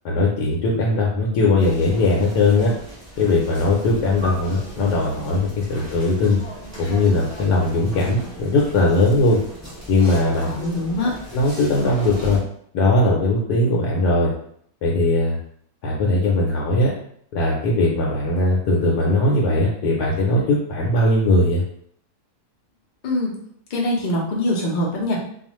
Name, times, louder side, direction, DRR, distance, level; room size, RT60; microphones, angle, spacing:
voice 1, 0.0-2.7 3.2-6.4 6.8-9.4 9.9-10.5 11.3-12.4 12.7-14.3 14.8-15.4 15.8-16.9 17.3-21.6, left 2 dB, 80° left, -3 dB, 1.1 m, -19 dB
sound 1, 1.6-12.4, equal, 10° right, 1.1 m, -37 dB
voice 2, 10.4-11.1 23.0-23.3 23.7-25.2, left 1 dB, 60° left, -2 dB, 0.5 m, -23 dB
2.4 x 2.4 x 2.9 m, 0.65 s
omnidirectional pair, 1.7 m